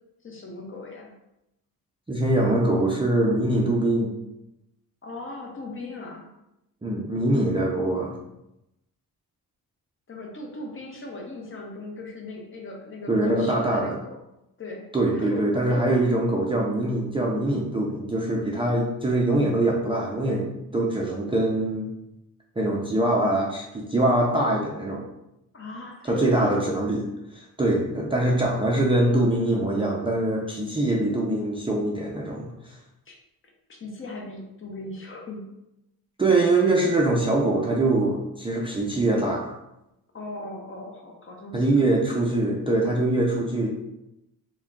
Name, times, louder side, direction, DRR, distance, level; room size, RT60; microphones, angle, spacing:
voice 1, 0.2-1.1 5.0-6.3 10.1-14.2 14.6-14.9 15.1-16.0 25.5-26.8 33.1-33.2 33.7-35.5 40.1-41.9, left 2 dB, 35° left, 0 dB, 0.7 m, -38 dB
voice 2, 2.1-4.1 6.8-8.1 13.1-13.9 14.9-21.9 22.6-25.0 26.0-27.0 27.3-32.8 36.2-39.5 41.5-43.7, right 1 dB, 15° right, -3 dB, 0.4 m, -23 dB
3.5 x 2.2 x 3.5 m, 0.88 s
cardioid pair, 115°, 37 cm